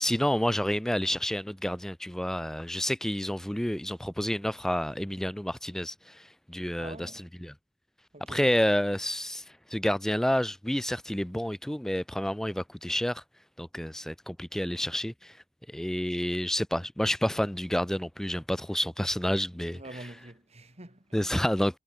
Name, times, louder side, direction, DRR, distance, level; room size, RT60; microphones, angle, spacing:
voice 1, 0.0-7.5 8.3-9.4 9.7-13.2 13.6-15.3 15.7-20.0 21.1-21.8, equal, ahead, 0.4 m, -29 dB
voice 2, 6.8-7.2 8.1-8.5 19.7-21.2, right 2 dB, 30° right, 3.0 m, -46 dB
head